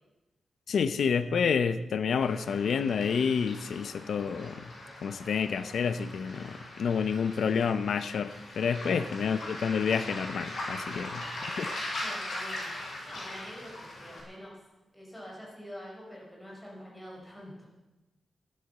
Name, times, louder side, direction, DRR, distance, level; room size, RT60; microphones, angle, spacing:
voice 1, 0.7-4.6 5.0-11.1 11.6-11.7, left 6 dB, 85° left, 11 dB, 0.8 m, -29 dB
Waves surf, 2.2-14.2, left 1 dB, 60° left, 7.6 m, -40 dB
voice 2, 7.0-7.4 8.8-9.2 10.9-11.5 12.0-14.6 14.9-17.7, equal, 5° left, -3 dB, 4.8 m, -46 dB
16.0 x 12.0 x 6.8 m, 1.0 s
wide cardioid pair, 180°, 0 cm